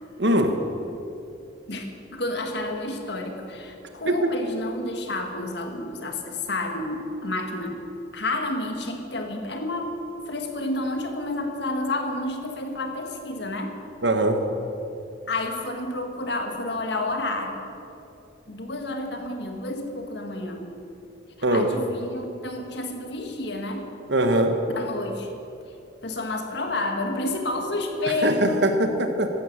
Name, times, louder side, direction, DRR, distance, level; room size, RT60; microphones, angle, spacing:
voice 1, 0.2-0.6 14.0-14.4 21.4-21.7 24.1-24.5 28.2-29.3, right 1 dB, 65° right, 6 dB, 1.4 m, -21 dB
voice 2, 1.7-7.8 8.1-10.0 10.3-13.8 15.3-17.6 18.5-20.7 21.5-23.9 24.7-25.4 26.0-28.7, left 2 dB, 60° left, 4 dB, 1.8 m, -30 dB
15.0 x 11.5 x 7.4 m, 2.8 s
head